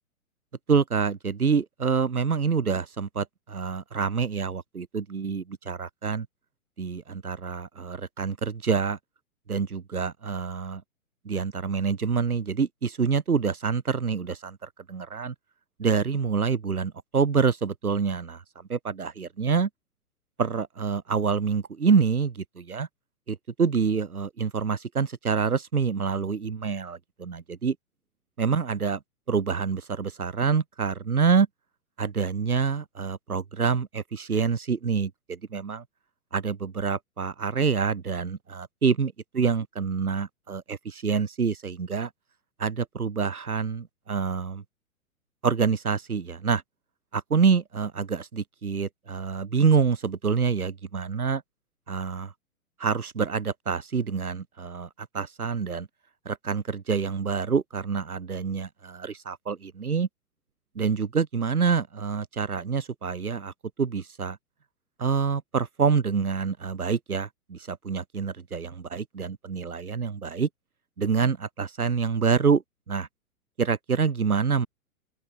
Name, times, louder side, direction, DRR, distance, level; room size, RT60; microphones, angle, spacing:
voice 1, 0.7-6.3 6.8-9.0 9.5-10.8 11.2-15.3 15.8-18.4 18.7-19.7 20.4-22.9 23.3-27.7 28.4-29.0 29.3-31.5 32.0-35.8 36.3-42.1 42.6-44.6 45.4-46.6 47.1-51.4 51.9-52.3 52.8-54.9 55.1-55.9 56.2-60.1 60.8-63.5 63.8-64.4 65.0-70.5 71.0-72.6 72.9-73.1 73.6-74.7, right 5 dB, 85° right, 1.2 m, -26 dB
open air
figure-of-eight pair, 115°, 43 cm